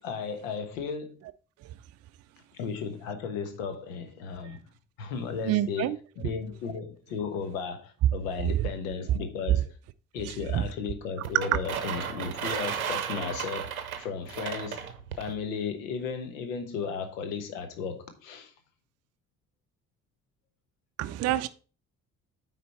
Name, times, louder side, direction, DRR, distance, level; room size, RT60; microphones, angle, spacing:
voice 1, 0.0-1.2 2.5-4.6 5.0-9.7 10.1-13.7 14.0-18.5, left 6 dB, 70° left, 1.2 m, -35 dB
voice 2, 5.4-6.0 10.2-10.7 11.3-11.4 21.0-21.5, right 14 dB, 40° right, 0.5 m, -28 dB
sound 1, 11.2-15.3, right 8 dB, 80° right, 0.7 m, -34 dB
9.3 x 4.0 x 4.3 m
figure-of-eight pair, 45°, 42 cm